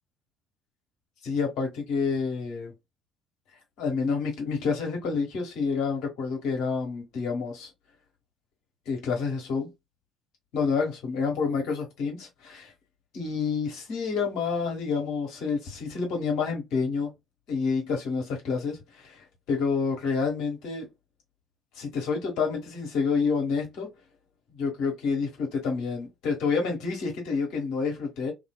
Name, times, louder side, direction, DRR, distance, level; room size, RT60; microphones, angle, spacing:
voice 1, 1.2-2.7 3.8-7.7 8.9-9.7 10.5-12.7 13.1-17.1 17.5-20.9 21.7-23.9 24.5-28.3, left 5 dB, 60° left, 1.2 m, -28 dB
2.6 x 2.6 x 2.2 m
figure-of-eight pair, 50°, 0 cm